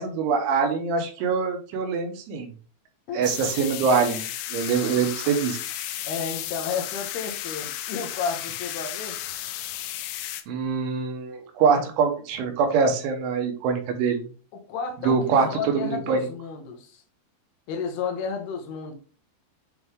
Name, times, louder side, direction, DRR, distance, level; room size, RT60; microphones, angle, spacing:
voice 1, 0.0-2.5 3.1-4.3 4.5-5.6 10.5-14.3 15.0-15.5 15.7-16.3, right 5 dB, 80° right, 3.4 m, -24 dB
sound 1, 3.2-10.4, left 13 dB, 85° left, 3.0 m, -34 dB
voice 2, 6.1-9.2 14.5-15.2 15.5-17.0 17.7-18.9, left 5 dB, 70° left, 2.7 m, -32 dB
8.4 x 3.5 x 3.6 m
omnidirectional pair, 5.4 m